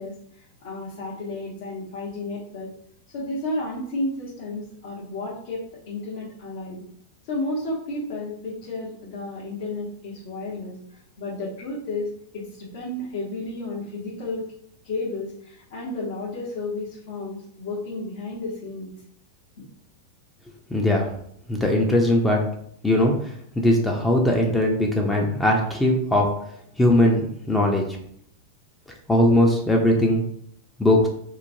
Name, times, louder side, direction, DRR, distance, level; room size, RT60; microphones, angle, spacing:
voice 1, 0.0-2.7 3.1-6.8 7.2-14.5 14.8-18.9, left 2 dB, 65° left, -7 dB, 0.9 m, -32 dB
voice 2, 20.7-21.1 21.5-22.5 22.8-26.3 26.8-27.9 29.1-30.2 30.8-31.1, left 1 dB, 10° left, 0 dB, 0.4 m, -20 dB
3.0 x 2.1 x 2.6 m, 0.68 s
hypercardioid pair, 130°, 0 cm